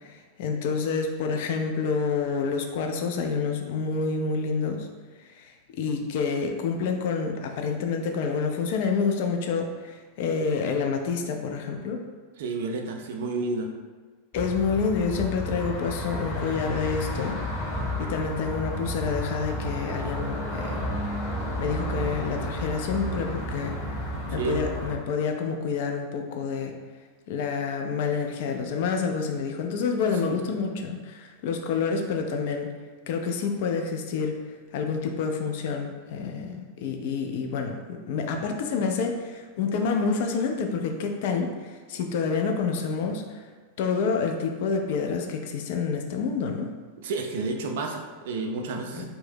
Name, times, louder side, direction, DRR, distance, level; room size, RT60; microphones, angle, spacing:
voice 1, 0.0-4.9 5.4-12.0 14.3-17.4 18.0-20.9 21.6-23.8 24.3-26.7 27.3-32.7 33.1-34.3 34.7-43.4 43.8-46.7 48.9-49.1, left 5 dB, 50° left, 4 dB, 0.3 m, -28 dB
voice 2, 12.4-13.7 24.3-24.6 30.0-30.4 47.0-49.1, right 3 dB, 55° right, 3 dB, 0.3 m, -31 dB
sound 1, 14.3-25.0, equal, 30° left, 0.7 m, -32 dB
2.5 x 2.1 x 3.3 m, 1.4 s
figure-of-eight pair, 90°, 0 cm